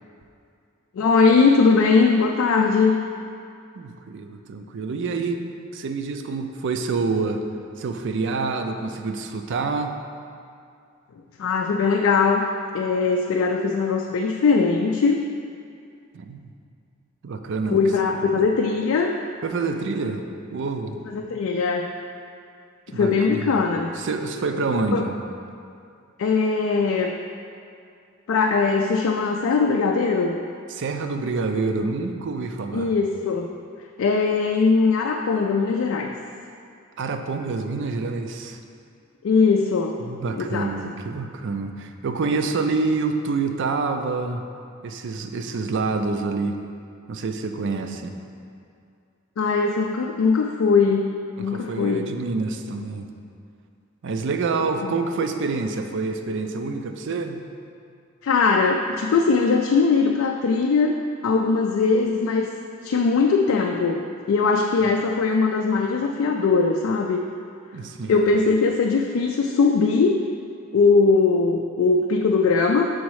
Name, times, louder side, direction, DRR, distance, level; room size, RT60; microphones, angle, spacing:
voice 1, 0.9-3.0 11.4-12.4 12.7-15.2 17.7-19.2 21.1-21.9 22.9-23.9 24.9-25.1 26.2-27.1 28.3-30.4 32.7-33.5 34.0-36.1 39.2-39.9 40.3-40.7 49.4-51.1 51.4-52.1 54.8-54.9 58.2-61.0 61.2-62.5 62.8-64.0 64.3-67.2 68.1-70.2 70.7-72.9, left 4 dB, 65° left, 2 dB, 0.3 m, -20 dB
voice 2, 3.7-5.4 5.7-7.4 7.8-10.0 16.1-16.5 17.2-17.8 18.2-18.3 19.4-20.2 20.5-21.0 22.9-23.6 24.0-25.1 30.7-32.9 37.0-38.6 40.0-44.4 44.8-46.6 47.1-48.1 51.4-53.1 54.0-57.4 67.7-68.2, right 4 dB, 60° right, 6 dB, 0.4 m, -27 dB
6.3 x 4.1 x 4.7 m, 2.4 s
head